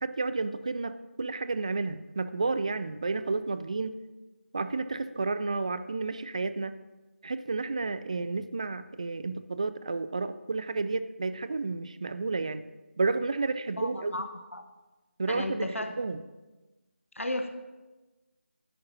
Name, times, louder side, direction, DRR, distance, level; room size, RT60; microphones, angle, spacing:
voice 1, 0.0-4.0 4.5-6.7 7.2-12.6 13.0-14.2 15.2-15.7 16.0-16.2, right 3 dB, 30° right, 12 dB, 0.4 m, -31 dB
voice 2, 13.8-14.6 15.3-15.9 17.1-17.5, left 1 dB, 85° left, 6 dB, 0.9 m, -34 dB
10.0 x 8.5 x 4.1 m, 1.2 s
figure-of-eight pair, 165°, 7 cm